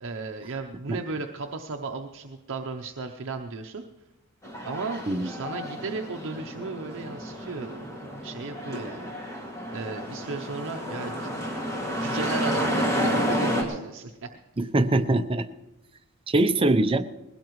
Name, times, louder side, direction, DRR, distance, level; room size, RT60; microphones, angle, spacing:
voice 1, 0.0-3.8 4.6-7.9 8.2-9.1 9.7-11.3 12.0-14.3, right 3 dB, 60° right, 4 dB, 0.7 m, -35 dB
sound 1, 4.4-13.6, equal, 15° left, 2.3 m, -30 dB
voice 2, 14.6-15.5 16.3-17.1, right 2 dB, 25° right, 8 dB, 0.6 m, -22 dB
21.0 x 17.0 x 3.1 m, 0.98 s
head